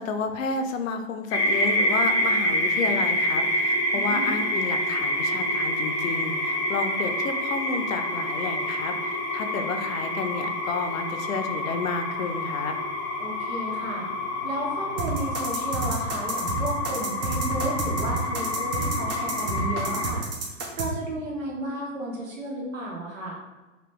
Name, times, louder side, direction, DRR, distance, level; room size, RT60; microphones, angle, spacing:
voice 1, 0.0-12.7, left 4 dB, 75° left, 6 dB, 0.6 m, -31 dB
sound 1, 1.3-20.1, left 1 dB, 30° left, 0.7 m, -27 dB
voice 2, 3.9-4.4 13.2-14.1 14.4-23.4, right 1 dB, 80° right, -3 dB, 1.5 m, -33 dB
sound 2, 15.0-20.9, right 4 dB, 30° right, 0.7 m, -30 dB
3.0 x 2.9 x 3.4 m, 1.2 s
hypercardioid pair, 115°, 40 cm